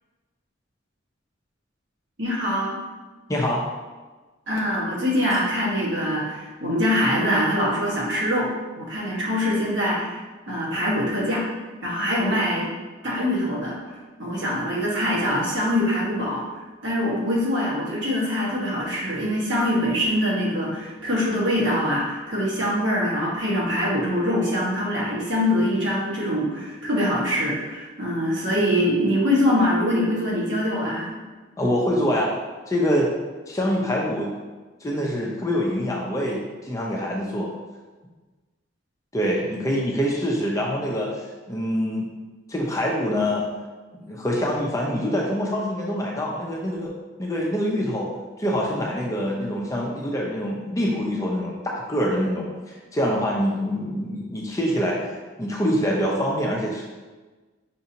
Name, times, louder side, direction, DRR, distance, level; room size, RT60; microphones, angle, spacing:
voice 1, 2.2-2.8 4.5-8.5 8.8-10.1 10.5-11.5 11.8-12.7 13.0-13.8 14.2-16.4 16.8-31.1, equal, 65° right, -6 dB, 1.3 m, -23 dB
voice 2, 3.3-3.6 31.6-32.4 32.7-33.1 33.5-34.3 34.8-37.5 39.1-42.1 42.5-43.5 44.0-46.9 47.2-48.1 48.4-56.8, equal, 15° left, -2 dB, 0.5 m, -25 dB
5.8 x 2.7 x 2.7 m, 1.3 s
head